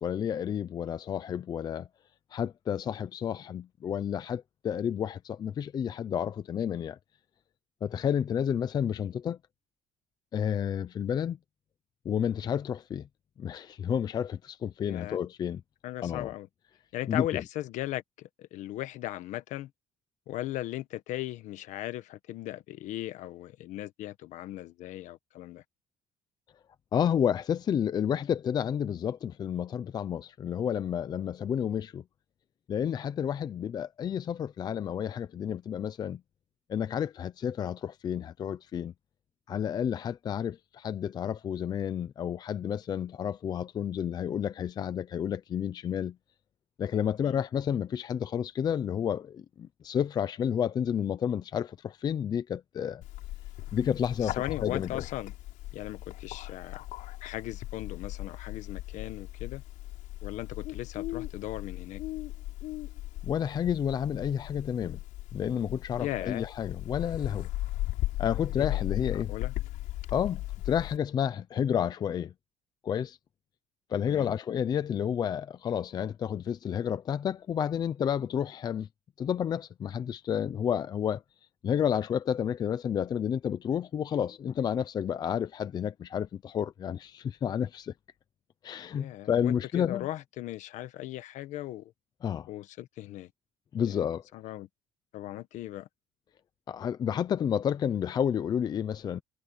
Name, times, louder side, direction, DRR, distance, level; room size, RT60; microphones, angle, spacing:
voice 1, 0.0-1.9 2.3-7.0 7.8-9.4 10.3-11.4 12.0-13.0 13.4-15.6 16.0-16.3 17.1-17.4 26.9-32.0 32.7-36.2 36.7-38.9 39.5-46.2 46.8-53.0 53.7-55.0 63.2-65.0 65.3-67.5 68.2-69.3 70.1-72.3 72.8-73.2 73.9-78.9 79.2-81.2 81.6-87.9 88.6-90.1 92.2-92.5 93.7-94.2 96.7-99.2, left 8 dB, 30° left, 0.6 m, -30 dB
voice 2, 14.8-15.2 15.8-16.5 16.9-19.7 20.3-25.6 47.2-47.4 54.2-55.3 55.7-56.8 57.2-59.6 60.2-62.0 66.0-66.5 68.6-68.8 69.1-69.5 74.1-74.3 88.9-91.9 92.5-93.3 93.8-94.0 94.3-94.7 95.1-95.9, left 14 dB, 65° left, 1.3 m, -38 dB
Bird, 53.0-71.0, left 16 dB, 80° left, 5.5 m, -37 dB
cardioid pair, 175°, 13 cm